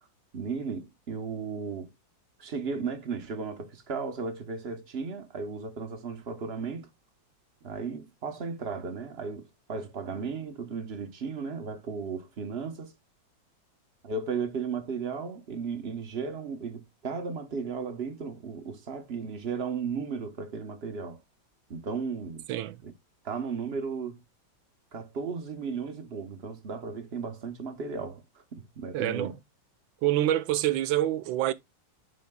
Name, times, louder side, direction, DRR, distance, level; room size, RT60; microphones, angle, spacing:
voice 1, 0.3-1.9 2.4-6.9 7.6-12.9 14.0-21.2 21.7-22.5 22.8-22.9 23.2-24.2 24.9-28.2 28.5-29.3, right 5 dB, 40° right, 1.0 m, -35 dB
voice 2, 22.5-22.8 28.9-29.3 30.0-31.5, right 13 dB, 80° right, 1.4 m, -26 dB
10.0 x 4.3 x 2.3 m
omnidirectional pair, 2.1 m